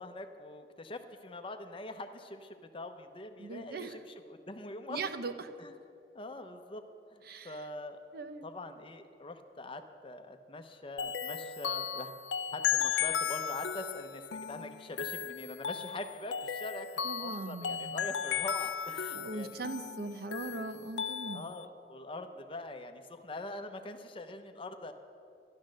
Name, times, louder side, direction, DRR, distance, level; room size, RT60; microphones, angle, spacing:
voice 1, 0.0-5.0 5.6-5.8 6.1-6.8 7.1-8.0 8.4-12.1 12.5-19.6 21.3-24.9, left 2 dB, 30° left, 7 dB, 0.8 m, -43 dB
voice 2, 3.4-3.9 4.9-5.3 7.3-7.6 8.1-8.5 17.0-18.0 19.1-21.5, right 3 dB, 60° right, 9 dB, 0.7 m, -40 dB
sound 1, 11.0-21.7, left 8 dB, 80° left, 0.4 m, -35 dB
12.0 x 11.5 x 6.4 m, 2.5 s
head